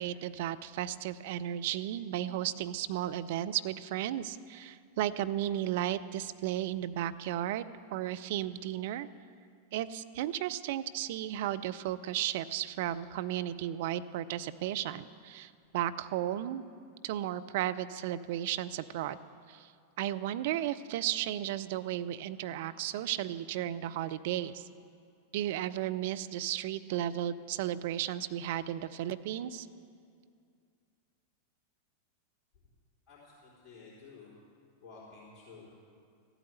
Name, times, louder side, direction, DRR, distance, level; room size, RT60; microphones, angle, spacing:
voice 1, 0.0-9.1 9.7-16.6 17.0-19.2 19.5-19.7 20.0-24.7 25.3-29.7, right 12 dB, 50° right, 12 dB, 0.5 m, -34 dB
voice 2, 33.1-34.3 34.8-35.7, left 4 dB, 20° left, -9 dB, 3.8 m, -52 dB
14.0 x 9.0 x 7.8 m, 2.3 s
figure-of-eight pair, 90°, 0 cm